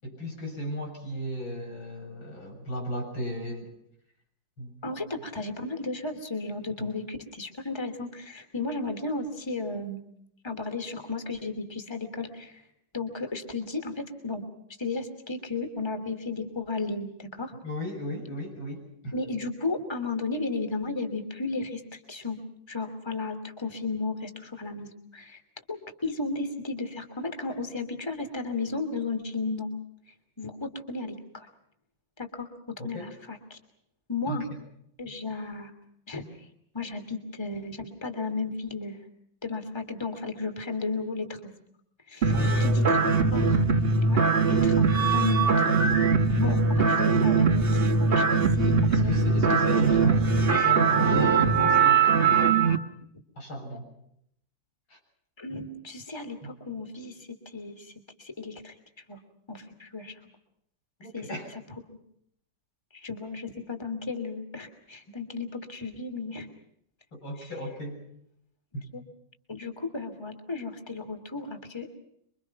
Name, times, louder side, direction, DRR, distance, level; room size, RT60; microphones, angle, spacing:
voice 1, 0.0-3.7 4.6-5.0 6.8-6.9 17.6-19.2 32.8-33.1 34.3-34.4 42.3-43.1 47.5-47.6 48.9-52.6 53.4-53.9 54.9-55.0 56.4-56.5 61.0-61.5 67.1-68.0 68.7-68.9, equal, 90° left, 1 dB, 8.0 m, -35 dB
voice 2, 4.8-10.0 10.4-12.6 12.9-14.4 14.8-17.5 19.1-22.4 22.7-25.4 25.7-29.7 30.4-31.5 32.2-32.5 32.8-33.6 34.1-34.4 35.0-35.7 36.1-36.5 36.7-39.0 39.4-41.4 42.1-42.3 42.6-43.0 43.3-43.7 44.1-45.7 46.4-49.4 50.0-50.2 55.4-57.9 58.2-58.8 59.1-59.2 59.5-60.2 61.1-61.3 62.9-66.5 67.4-67.5 68.9-69.0 69.5-71.9, left 3 dB, 15° left, 7 dB, 2.8 m, -34 dB
sound 1, 42.2-52.8, right 4 dB, 30° right, 1.5 m, -21 dB
27.0 x 24.0 x 5.9 m, 0.73 s
omnidirectional pair, 2.1 m